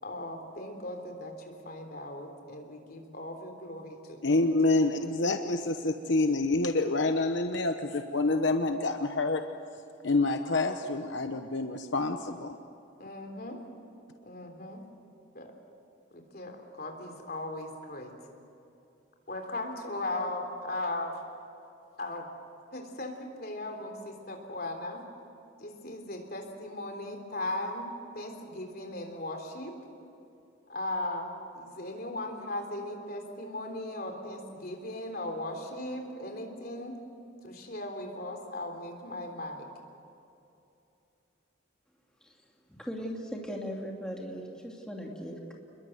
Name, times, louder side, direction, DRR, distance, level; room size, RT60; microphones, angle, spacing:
voice 1, 0.0-4.4 13.0-13.6 14.2-14.8 15.4-15.5 16.1-18.1 19.3-21.1 22.0-22.3 22.7-25.0 25.6-27.9 28.1-29.7 30.7-36.9 37.4-39.7, left 1 dB, 50° left, 4 dB, 3.5 m, -38 dB
voice 2, 4.2-9.4 10.0-12.6, left 2 dB, 65° left, 6 dB, 1.0 m, -27 dB
voice 3, 42.7-45.5, equal, 5° left, -1 dB, 2.7 m, -38 dB
29.0 x 22.0 x 7.9 m, 2.8 s
head